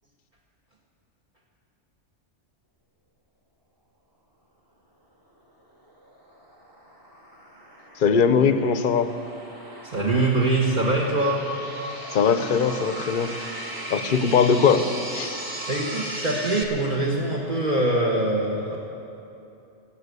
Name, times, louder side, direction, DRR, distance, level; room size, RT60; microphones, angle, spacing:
sound 1, 5.8-16.6, right 1 dB, 20° right, 1.4 m, -37 dB
voice 1, 8.0-9.1 12.1-13.4 13.9-14.8 15.1-15.3, left 6 dB, 50° left, 10 dB, 0.8 m, -20 dB
voice 2, 9.8-11.6 15.7-18.8, right 2 dB, 40° right, -4 dB, 1.4 m, -23 dB
18.5 x 7.7 x 8.2 m, 2.8 s
omnidirectional pair, 1.2 m